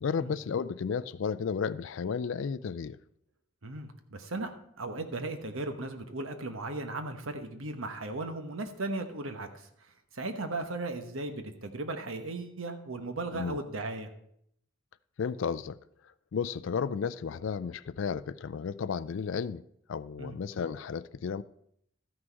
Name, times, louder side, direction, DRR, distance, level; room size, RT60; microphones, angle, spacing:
voice 1, 0.0-3.0 13.3-13.6 15.2-15.8 16.3-19.6 19.9-21.4, left 6 dB, 65° left, 0.4 m, -33 dB
voice 2, 3.6-9.7 10.1-14.1 20.2-20.4, right 2 dB, 75° right, 1.1 m, -36 dB
13.5 x 6.2 x 4.6 m
head